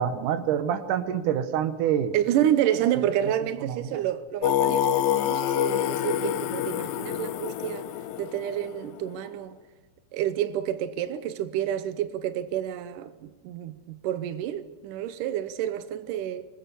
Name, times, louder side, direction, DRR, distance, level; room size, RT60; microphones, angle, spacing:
voice 1, 0.0-2.1 3.2-3.3 3.6-4.0, right 9 dB, 65° right, 2.2 m, -27 dB
voice 2, 2.1-7.9 8.2-9.6 10.1-16.5, right 11 dB, 85° right, 1.8 m, -29 dB
Singing, 4.4-9.2, left 11 dB, 75° left, 2.2 m, -27 dB
25.5 x 21.0 x 6.9 m
omnidirectional pair, 5.0 m